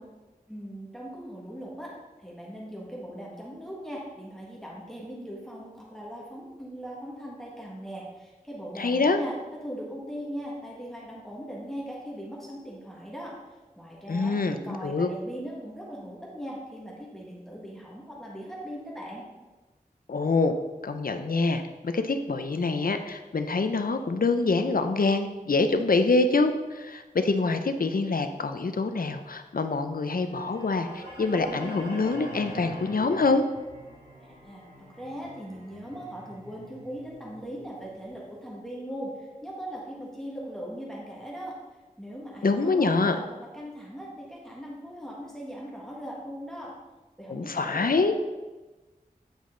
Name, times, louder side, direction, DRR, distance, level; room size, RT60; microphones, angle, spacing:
voice 1, 0.5-1.9 2.2-9.4 9.6-13.3 13.8-19.3 34.4-34.6 35.0-41.6 42.0-46.7 47.2-48.1, equal, 5° left, -4 dB, 1.6 m, -39 dB
voice 2, 8.8-9.2 14.1-15.1 20.1-20.6 20.8-33.4 42.4-43.2 47.3-48.1, left 3 dB, 70° left, 8 dB, 0.6 m, -25 dB
sound 1, 30.2-38.2, equal, 75° right, 2.4 m, -44 dB
9.0 x 5.3 x 3.8 m, 1.2 s
wide cardioid pair, 55°, 15 cm